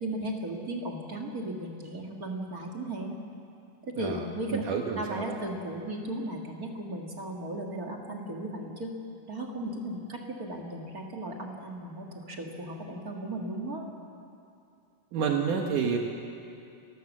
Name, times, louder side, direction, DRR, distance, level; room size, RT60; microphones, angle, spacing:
voice 1, 0.0-3.2 3.8-4.7 5.0-8.9 9.3-13.9, right 1 dB, 40° right, 1 dB, 1.4 m, -36 dB
voice 2, 4.5-5.2 15.1-16.0, right 6 dB, 70° right, 2 dB, 2.6 m, -29 dB
29.5 x 14.5 x 7.4 m, 2.6 s
omnidirectional pair, 4.0 m